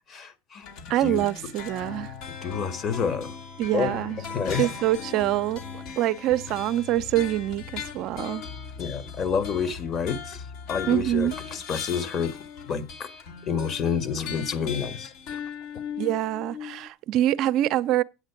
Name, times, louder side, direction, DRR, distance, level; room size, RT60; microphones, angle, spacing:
voice 1, 0.1-0.7 1.0-1.3 2.3-3.3 3.7-4.0 4.3-4.7 8.8-12.4 12.6-13.1 13.5-15.4, left 6 dB, 40° left, 1.5 m, -29 dB
sound 1, 0.6-16.9, left 6 dB, 60° left, 2.0 m, -38 dB
voice 2, 0.9-2.1 3.6-4.2 4.6-5.6 6.0-8.4 10.9-11.3 16.0-18.0, right 13 dB, 55° right, 0.5 m, -25 dB
8.3 x 8.0 x 5.9 m
supercardioid pair, 100°, 0 cm